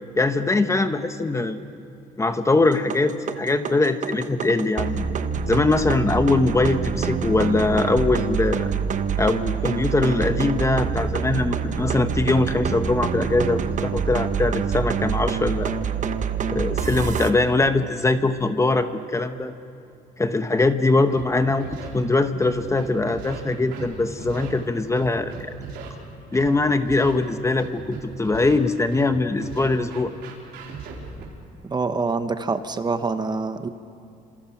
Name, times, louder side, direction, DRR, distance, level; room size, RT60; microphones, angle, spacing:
voice 1, 0.2-1.6 2.2-5.1 5.5-8.7 9.2-15.8 16.5-19.5 20.2-21.7 21.9-25.3 26.3-30.1, left 2 dB, 15° left, 9 dB, 1.1 m, -22 dB
sound 1, 2.6-17.3, right 6 dB, 45° right, 1.2 m, -26 dB
Scratching (performance technique), 21.1-21.2 21.6-21.9 22.4-23.4 23.7-23.9 24.2-24.5 25.0-25.9 26.3-26.5 26.9-27.1 27.6-28.5 28.9-29.1 29.4-31.2, right 6 dB, 85° right, 4.6 m, -37 dB
voice 2, 31.6-33.7, right 4 dB, 25° right, 9 dB, 1.1 m, -25 dB
28.0 x 26.5 x 5.9 m, 2.6 s
cardioid pair, 110°, 17 cm